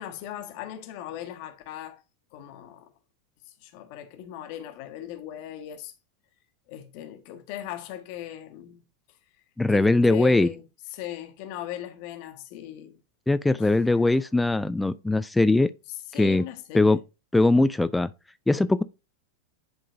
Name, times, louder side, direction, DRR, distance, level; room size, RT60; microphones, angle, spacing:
voice 1, 0.0-2.0 2.3-2.9 3.5-5.9 6.7-8.8 9.7-10.6 10.9-13.0 13.6-14.2 16.1-17.0, left 11 dB, 45° left, 1.3 m, -39 dB
voice 2, 9.6-10.5 13.3-15.7 16.2-16.4 16.7-17.0 17.3-18.1 18.5-18.8, left 2 dB, 5° left, 0.3 m, -21 dB
10.5 x 3.8 x 2.6 m
figure-of-eight pair, 90°, 0 cm